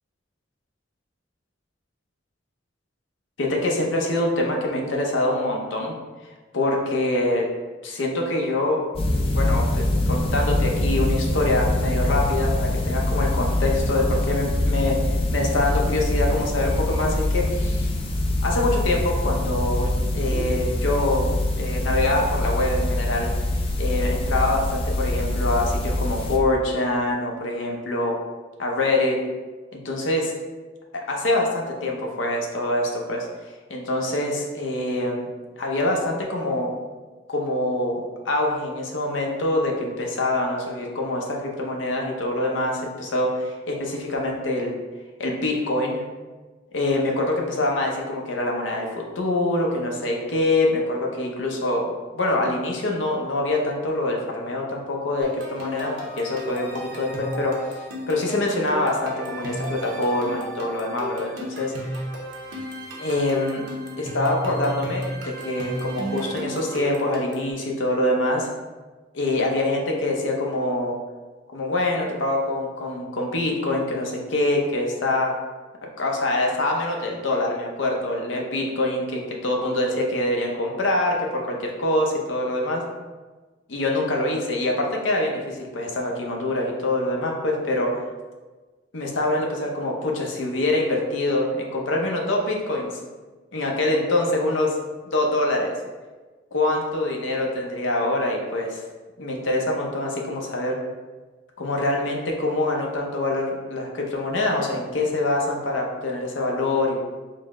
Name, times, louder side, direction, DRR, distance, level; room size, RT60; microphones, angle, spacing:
voice 1, 3.4-5.9 6.5-7.5 7.8-8.9 9.3-17.9 18.4-21.3 21.6-23.3 23.8-28.1 28.6-29.2 29.7-30.3 31.1-33.3 33.7-35.3 35.6-36.7 37.3-44.7 45.2-46.0 46.7-51.9 52.1-62.0 63.0-63.6 64.0-68.5 69.1-70.9 71.5-75.3 76.0-82.8 83.7-88.0 88.9-92.9 93.5-94.7 95.1-95.7 96.5-98.8 99.2-100.8 101.6-107.0, left 2 dB, 85° left, 0 dB, 0.7 m, -25 dB
sound 1, 9.0-26.4, left 1 dB, 30° left, 0.4 m, -24 dB
sound 2, 55.2-67.5, equal, 80° right, 0.7 m, -34 dB
3.9 x 2.1 x 3.5 m, 1.3 s
head